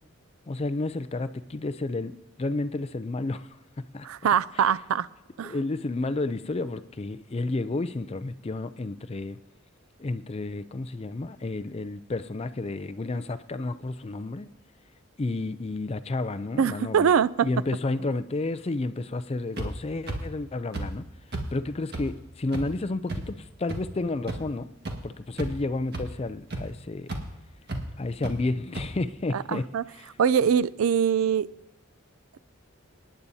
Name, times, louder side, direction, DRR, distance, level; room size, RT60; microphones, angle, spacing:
voice 1, 0.5-2.1 2.4-3.5 3.8-4.1 5.4-9.4 10.0-14.5 15.2-17.1 17.4-21.1 21.5-24.7 25.0-27.1 28.0-29.7 29.9-30.1, left 2 dB, 30° left, 12 dB, 0.4 m, -31 dB
voice 2, 4.0-5.1 5.4-5.5 16.6-17.5 29.3-29.8 30.2-31.5, right 7 dB, 85° right, 18 dB, 0.4 m, -23 dB
sound 1, 19.6-19.7 20.1-20.2 20.7-20.8 21.3-21.4 21.9-22.0 22.5-22.6 23.1-23.2 23.7-23.8 24.3-24.4 24.8-24.9 25.3-25.6 25.9-26.0 26.5-26.6 27.1-27.2 27.7-27.8 28.2-28.3 28.7-28.8, right 2 dB, 50° right, 1.6 m, -31 dB
25.5 x 10.0 x 2.7 m, 0.98 s
head